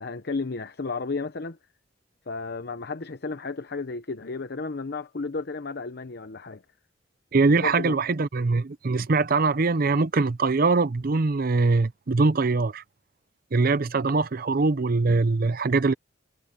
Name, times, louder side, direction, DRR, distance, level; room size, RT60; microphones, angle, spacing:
voice 1, 0.0-1.6 2.3-6.6 7.6-8.0, left 4 dB, 60° left, 0.8 m, -33 dB
voice 2, 7.3-12.8 13.5-15.9, right 3 dB, 50° right, 0.6 m, -22 dB
head